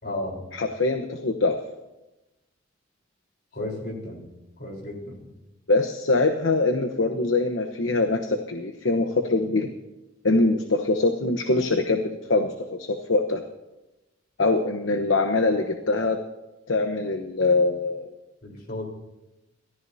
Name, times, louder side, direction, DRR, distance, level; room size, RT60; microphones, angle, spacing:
voice 1, 0.0-0.4 3.5-4.3 4.6-5.3 18.4-18.8, left 1 dB, 55° left, 0 dB, 4.0 m, -33 dB
voice 2, 0.5-1.6 5.7-9.7 10.2-12.5 12.8-13.4 14.4-16.2 16.7-18.1, left 3 dB, 70° left, 5 dB, 1.0 m, -23 dB
28.5 x 14.0 x 2.8 m, 1.0 s
head